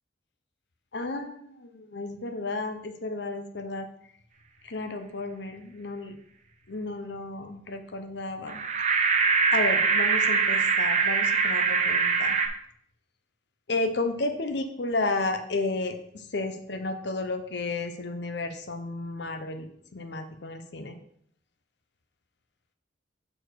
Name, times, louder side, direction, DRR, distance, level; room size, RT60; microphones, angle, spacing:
voice 1, 0.9-3.9 4.6-6.1 6.7-8.6 9.5-12.4 13.7-20.9, left 2 dB, 65° left, 7 dB, 0.7 m, -32 dB
sound 1, 8.5-12.5, right 5 dB, 40° right, 0.7 m, -23 dB
6.8 x 4.3 x 4.7 m, 0.68 s
head